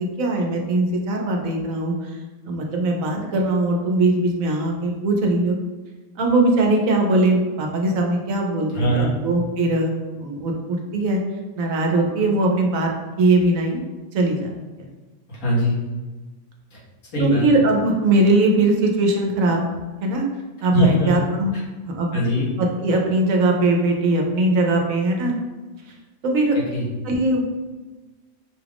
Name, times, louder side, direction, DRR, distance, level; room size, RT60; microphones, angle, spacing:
voice 1, 0.2-1.9 2.4-5.5 6.2-9.9 10.2-11.2 11.6-12.9 13.2-13.8 14.1-14.5 17.2-19.6 20.0-20.2 20.6-21.5 21.8-22.1 22.6-25.3 26.2-26.6 27.0-27.4, right 2 dB, 75° right, 1 dB, 1.1 m, -20 dB
voice 2, 8.7-9.1 15.3-15.8 16.7-16.8 17.1-17.4 20.7-21.1 22.1-22.5 26.5-26.9, equal, 90° left, -7 dB, 1.9 m, -21 dB
5.9 x 2.4 x 3.4 m, 1.3 s
omnidirectional pair, 1.4 m